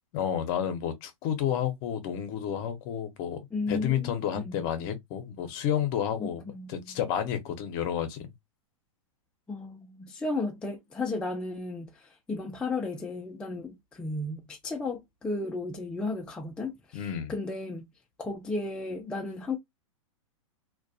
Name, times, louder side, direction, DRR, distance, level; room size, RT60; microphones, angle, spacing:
voice 1, 0.1-3.4 3.7-8.3 16.9-17.3, left 9 dB, 45° left, 0.7 m, -31 dB
voice 2, 3.5-4.2 4.5-4.6 6.2-7.0 9.5-17.0 17.3-17.9 18.2-19.6, left 3 dB, 5° left, 0.3 m, -34 dB
2.3 x 2.2 x 2.6 m
hypercardioid pair, 125°, 17 cm